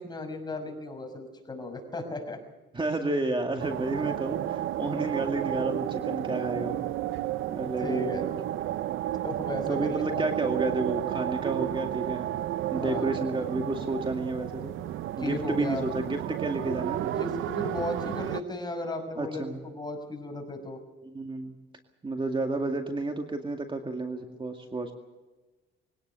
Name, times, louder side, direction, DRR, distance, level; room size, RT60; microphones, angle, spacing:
voice 1, 0.0-2.4 7.8-8.2 9.2-10.3 12.7-13.1 15.2-15.9 17.1-20.8, left 2 dB, 20° left, 4 dB, 6.1 m, -35 dB
voice 2, 2.7-6.9 7.5-8.4 9.7-12.3 12.7-14.8 15.2-17.2 19.2-19.6 21.0-21.6 22.0-24.9, right 2 dB, 25° right, 4 dB, 2.2 m, -31 dB
sound 1, 3.6-18.4, right 13 dB, 80° right, 0.7 m, -32 dB
22.5 x 18.0 x 7.0 m, 1.2 s
cardioid pair, 90°, 20 cm